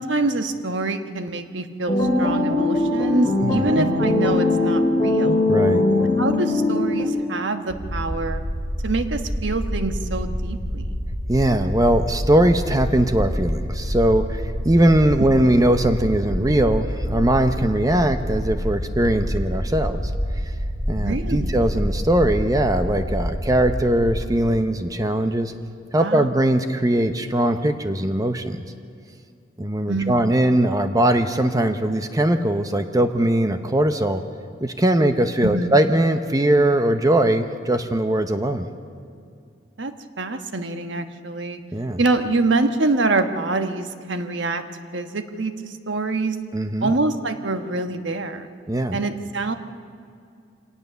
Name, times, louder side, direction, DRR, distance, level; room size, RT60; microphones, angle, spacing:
voice 1, 0.0-5.4 6.2-8.4 8.8-10.8 20.9-21.5 26.0-26.3 29.9-30.3 35.4-35.7 39.8-41.6 42.0-44.6 44.9-46.4 46.8-48.5 48.9-49.5, right 2 dB, 85° right, 8 dB, 1.2 m, -25 dB
sound 1, 1.9-7.0, left 2 dB, 30° left, 3.3 m, -20 dB
voice 2, 3.3-3.8 5.5-5.8 11.3-20.0 20.9-25.5 25.9-28.6 29.6-34.2 34.6-38.7 41.7-42.0 46.5-46.9 48.7-49.0, right 1 dB, 20° right, 8 dB, 0.8 m, -20 dB
sound 2, 7.7-24.2, equal, 60° right, 7.5 m, -27 dB
25.0 x 18.5 x 6.9 m, 2.4 s
head